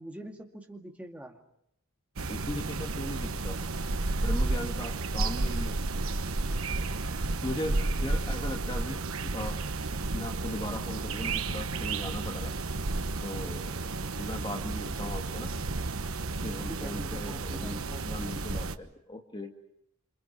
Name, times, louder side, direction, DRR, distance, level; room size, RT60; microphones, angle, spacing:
voice 1, 0.0-1.4 16.7-18.3, equal, 5° right, 2 dB, 2.3 m, -44 dB
voice 2, 2.2-3.6 4.2-5.8 7.4-9.1 9.3-9.6 10.1-12.6 13.2-15.5 16.4-19.7, left 1 dB, 20° left, 3 dB, 1.8 m, -38 dB
sound 1, 2.2-18.8, right 3 dB, 75° right, 1.1 m, -32 dB
28.5 x 26.5 x 6.0 m, 0.76 s
head